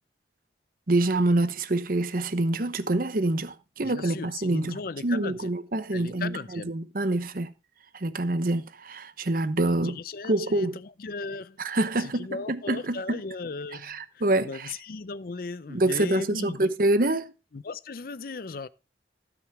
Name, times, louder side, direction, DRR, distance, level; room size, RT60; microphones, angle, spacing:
voice 1, 0.9-7.5 7.9-10.0 10.3-10.8 11.6-13.2 13.8-14.7 15.7-17.3, right 2 dB, 50° right, 0.9 m, -26 dB
voice 2, 3.8-5.5 5.9-6.7 9.8-11.6 12.0-16.7 17.5-18.7, left 4 dB, 55° left, 0.5 m, -37 dB
16.0 x 6.2 x 3.6 m
head